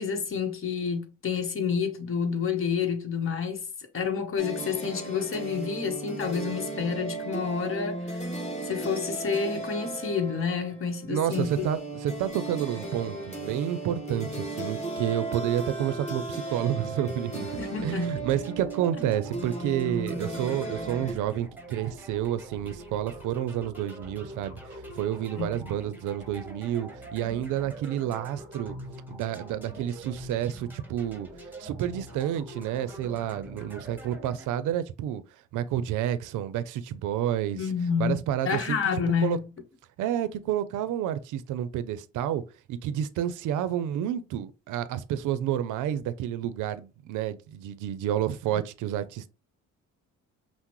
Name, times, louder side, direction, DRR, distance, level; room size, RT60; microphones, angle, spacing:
voice 1, 0.0-8.3 8.6-11.7 17.6-18.1 25.4-25.6 37.5-39.4, left 6 dB, 45° left, 1.1 m, -29 dB
sound 1, 4.4-21.1, right 2 dB, 25° left, 2.2 m, -36 dB
voice 2, 11.1-28.8 29.1-31.3 31.6-35.2 35.5-37.6 38.0-38.8 39.2-39.4 40.0-49.3, right 11 dB, 85° right, 0.5 m, -30 dB
sound 2, 17.3-34.5, right 1 dB, 5° right, 1.1 m, -44 dB
5.8 x 2.1 x 3.0 m
cardioid pair, 90°, 30 cm